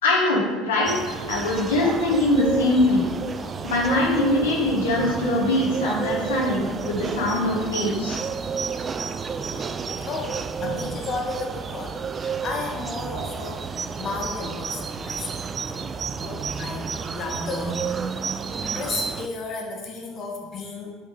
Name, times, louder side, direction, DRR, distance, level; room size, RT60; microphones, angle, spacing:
voice 1, 0.0-3.1 3.6-8.2, left 2 dB, 90° left, -4 dB, 1.4 m, -22 dB
sound 1, 0.8-19.3, right 5 dB, 30° right, 0.3 m, -31 dB
voice 2, 1.3-1.7 2.0-2.1 3.3-3.5 5.0-5.5 8.5-8.7 9.1-15.8 16.2-18.0 18.7-21.0, left 3 dB, 40° left, -1 dB, 1.3 m, -34 dB
5.6 x 3.5 x 5.4 m, 1.4 s
hypercardioid pair, 80°, 0 cm